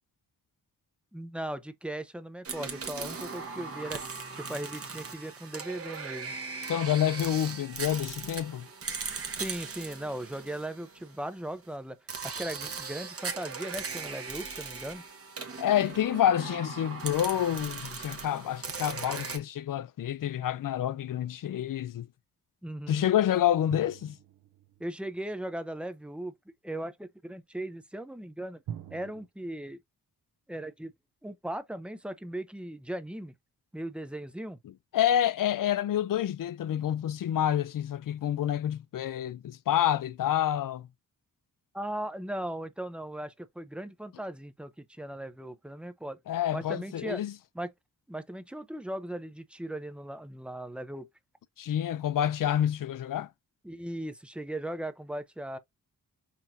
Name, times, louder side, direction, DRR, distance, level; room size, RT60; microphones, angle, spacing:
voice 1, 1.1-4.0 4.3-6.4 9.3-12.0 12.2-15.0 22.6-23.1 24.8-26.3 26.6-28.6 28.9-29.8 30.5-30.9 31.2-33.3 33.7-34.6 41.7-46.2 46.5-47.2 47.5-47.7 48.1-51.1 53.6-55.6, right 1 dB, 5° right, 0.5 m, -38 dB
sound 1, 2.4-11.3 12.1-19.4, right 5 dB, 40° right, 0.9 m, -39 dB
voice 2, 6.7-8.7 15.6-22.1 22.9-24.2 34.9-40.9 46.3-47.3 51.6-53.3, left 11 dB, 65° left, 0.5 m, -28 dB
sound 2, 23.7-25.4 28.7-29.3, right 9 dB, 85° right, 0.7 m, -44 dB
5.9 x 2.9 x 2.6 m
wide cardioid pair, 160°, 36 cm